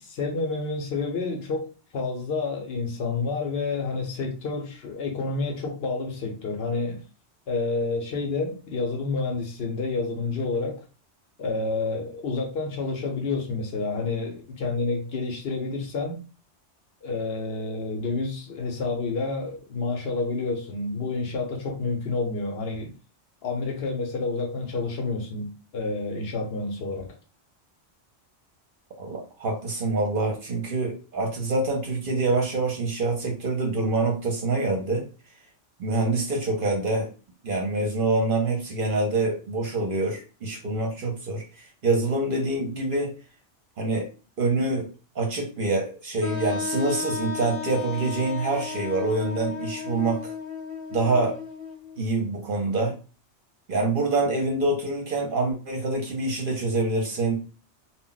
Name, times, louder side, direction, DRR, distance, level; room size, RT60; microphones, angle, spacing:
voice 1, 0.0-7.0 7.5-10.8 11.4-16.2 17.0-22.9 23.4-27.2, left 3 dB, 65° left, 0.8 m, -29 dB
voice 2, 29.0-35.1 35.8-37.1 37.4-43.2 43.8-44.1 44.4-44.9 45.2-50.3 50.9-51.4 52.0-52.9 53.7-57.4, right 2 dB, 55° right, 0.7 m, -26 dB
Wind instrument woodwind instrument, 46.2-52.0, left 5 dB, 15° left, 0.6 m, -34 dB
2.2 x 2.0 x 3.8 m
omnidirectional pair, 1.2 m